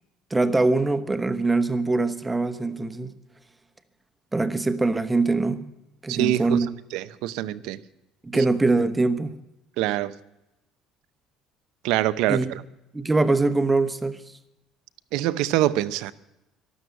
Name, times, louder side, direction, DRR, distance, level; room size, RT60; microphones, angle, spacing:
voice 1, 0.3-3.1 4.3-5.7 6.0-6.7 8.2-9.3 12.3-12.6 12.9-14.2, right 3 dB, 10° right, 1.0 m, -23 dB
voice 2, 6.1-6.6 6.9-7.8 9.8-10.1 11.8-12.4 15.1-16.1, right 15 dB, 75° right, 0.7 m, -24 dB
12.5 x 12.5 x 8.0 m
cardioid pair, 145°, 0 cm